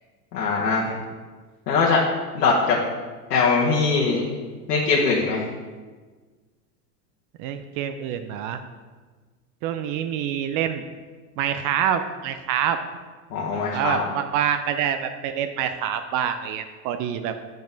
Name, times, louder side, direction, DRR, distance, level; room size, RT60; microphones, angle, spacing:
voice 1, 0.3-0.9 1.7-2.0 2.3-2.8 3.3-4.2 4.7-5.4 13.3-14.0, left 4 dB, 85° left, -4 dB, 1.3 m, -21 dB
voice 2, 7.4-8.6 9.6-10.8 11.4-12.8 13.7-17.4, right 9 dB, 40° right, 8 dB, 0.5 m, -26 dB
7.0 x 5.2 x 3.9 m, 1.4 s
hypercardioid pair, 100°, 47 cm